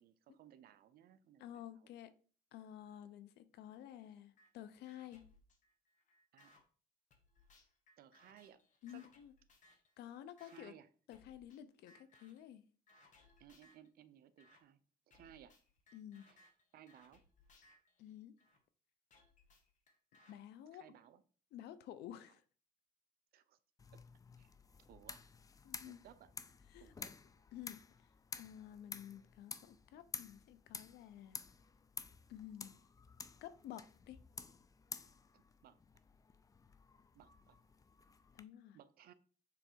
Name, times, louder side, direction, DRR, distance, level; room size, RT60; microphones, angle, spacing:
voice 1, 0.0-1.6 6.3-6.5 8.0-8.6 8.9-9.0 10.4-10.9 13.4-14.8 15.1-15.6 16.3-16.4 16.7-17.2 20.7-21.2 23.3-23.6 23.9-24.0 24.4-24.5 24.9-25.2 25.8-26.3 26.8-27.2 35.3-35.8 37.1-37.6 38.7-39.1, right 10 dB, 65° right, 0.6 m, -61 dB
voice 2, 1.4-2.1 2.5-5.2 8.8-9.3 10.0-10.7 11.1-12.7 15.9-16.3 18.0-18.3 20.3-20.9 21.5-22.4 25.6-26.0 26.7-26.9 27.5-27.8 28.4-31.4 32.3-32.8 33.4-34.2 38.3-38.8, left 11 dB, 75° left, 0.6 m, -52 dB
sound 1, 4.4-4.5 4.9-6.6 7.1-9.9 10.4-10.6 11.1-11.6 11.9-12.5 12.9-13.9 14.4-14.6 15.1-18.6 19.1-20.3, left 2 dB, 45° left, 1.4 m, -67 dB
sound 2, 23.8-38.4, left 5 dB, 20° left, 0.4 m, -52 dB
7.0 x 3.3 x 4.5 m
cardioid pair, 110°, 17 cm